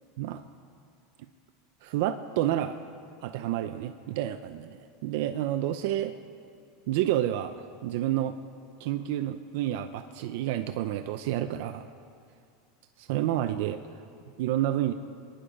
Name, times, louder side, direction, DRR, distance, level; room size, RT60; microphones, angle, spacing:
voice 1, 1.8-2.8 3.2-6.1 6.9-8.4 8.8-11.8 13.0-13.8 14.4-14.9, right 12 dB, 50° right, 8 dB, 0.6 m, -29 dB
25.5 x 10.0 x 5.2 m, 2.4 s
supercardioid pair, 180°, 0 cm